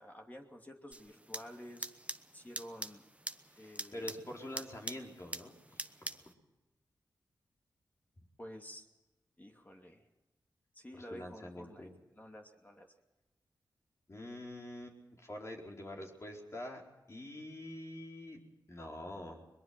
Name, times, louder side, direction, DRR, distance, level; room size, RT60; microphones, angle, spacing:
voice 1, 0.0-1.9 2.3-3.0 3.6-4.1 4.5-4.6 8.4-8.9 9.4-10.0 10.7-12.9, equal, 25° left, 2 dB, 2.6 m, -51 dB
sound 1, 0.9-6.3, right 1 dB, 15° right, 1.0 m, -45 dB
voice 2, 3.5-6.2 10.9-11.9 14.1-16.8 17.1-18.4 18.7-19.4, left 1 dB, 40° left, 0 dB, 4.6 m, -46 dB
22.0 x 21.5 x 6.0 m, 1.1 s
cardioid pair, 55°, 7 cm